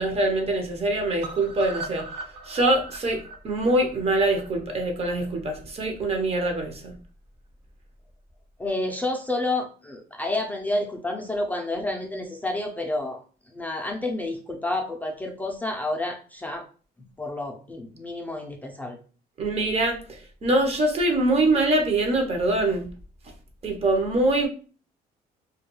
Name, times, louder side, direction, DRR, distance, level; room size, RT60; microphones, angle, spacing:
voice 1, 0.0-2.1 2.5-6.9 19.4-20.0 20.4-22.9 23.6-24.5, right 2 dB, 35° right, 4 dB, 0.6 m, -24 dB
sound 1, 1.2-5.2 5.6-5.7 6.0-6.1 6.3-6.4, right 3 dB, 80° right, 0.5 m, -39 dB
voice 2, 8.6-13.2 13.5-16.6 17.2-19.0, left 2 dB, 10° left, 0 dB, 0.4 m, -29 dB
2.2 x 2.2 x 2.9 m, 0.39 s
cardioid pair, 110°, 17 cm